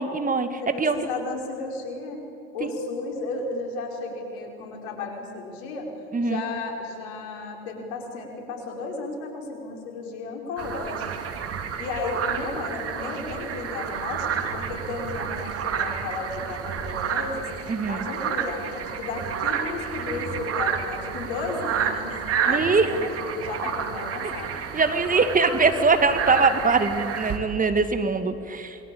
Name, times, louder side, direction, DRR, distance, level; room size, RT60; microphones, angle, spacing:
voice 1, 0.0-1.0 2.6-2.7 6.1-6.4 17.7-18.0 22.5-23.0 24.7-28.8, right 4 dB, 25° right, 9 dB, 2.1 m, -22 dB
voice 2, 0.6-2.3 2.5-5.9 6.2-11.4 11.8-17.5 17.9-22.2 22.4-24.6, left 3 dB, 75° left, 2 dB, 5.2 m, -34 dB
sound 1, 10.6-27.4, right 7 dB, 50° right, 2.8 m, -30 dB
27.0 x 22.0 x 8.6 m, 2.8 s
hypercardioid pair, 70°, 31 cm